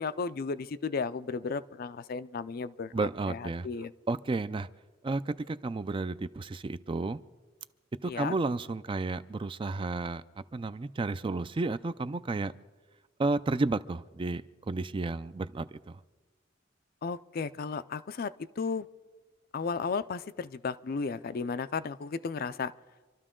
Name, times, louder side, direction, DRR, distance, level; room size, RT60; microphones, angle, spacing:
voice 1, 0.0-2.9 3.3-3.9 8.0-8.4 17.0-18.9 19.5-22.7, left 5 dB, 50° left, 14 dB, 0.4 m, -34 dB
voice 2, 2.9-3.7 4.1-4.7 5.0-7.2 8.0-10.2 10.5-12.5 13.2-16.0, right 3 dB, 25° right, 14 dB, 0.4 m, -32 dB
26.0 x 12.5 x 3.7 m, 1.3 s
head